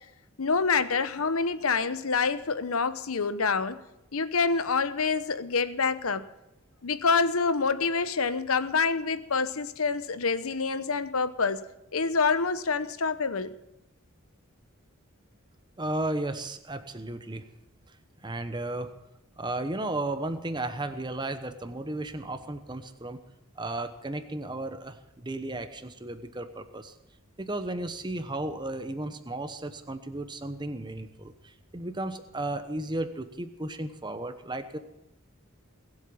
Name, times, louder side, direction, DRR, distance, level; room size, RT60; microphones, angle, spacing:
voice 1, 0.4-3.8 4.1-6.3 6.8-11.6 11.9-13.6, left 4 dB, 75° left, 13 dB, 0.9 m, -27 dB
voice 2, 15.8-17.4 18.2-18.9 19.4-23.2 23.6-26.9 27.4-34.8, right 2 dB, 20° right, 9 dB, 0.9 m, -34 dB
20.0 x 8.1 x 7.1 m, 0.90 s
head